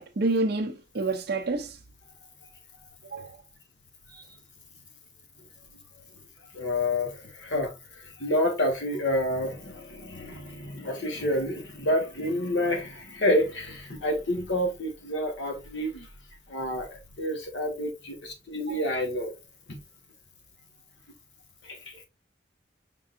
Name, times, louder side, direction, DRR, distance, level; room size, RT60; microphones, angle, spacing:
voice 1, 0.0-1.8 3.1-3.4 4.1-4.3 18.7-18.8, right 2 dB, 60° right, 0.6 m, -28 dB
voice 2, 6.5-16.1 16.5-19.3 19.7-19.8 21.6-22.0, left 1 dB, 90° left, 1.5 m, -29 dB
5.2 x 3.7 x 2.5 m
head